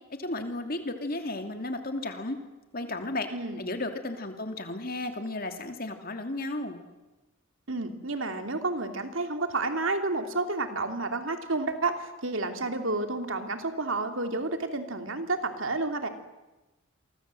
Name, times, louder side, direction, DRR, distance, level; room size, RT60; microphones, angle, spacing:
voice 1, 0.2-2.4 2.7-3.3 3.6-6.8, left 2 dB, 45° left, 6 dB, 2.8 m, -34 dB
voice 2, 7.7-16.1, right 3 dB, 65° right, 6 dB, 2.9 m, -30 dB
29.0 x 23.5 x 7.8 m, 1.1 s
head